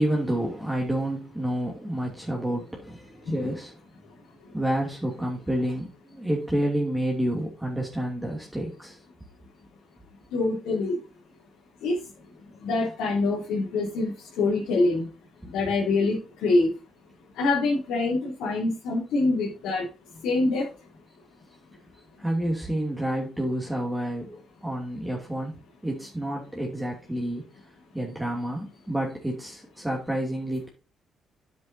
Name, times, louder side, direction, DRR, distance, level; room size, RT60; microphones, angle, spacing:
voice 1, 0.0-3.7 4.5-9.0 22.2-25.5 25.8-27.4 27.9-30.7, right 1 dB, 5° right, 2.7 m, -29 dB
voice 2, 10.3-11.0 11.8-12.0 12.6-15.1 15.5-16.7 17.4-19.8 20.2-20.6, left 3 dB, 90° left, 3.3 m, -25 dB
9.5 x 8.0 x 2.8 m
cardioid pair, 90°, 0 cm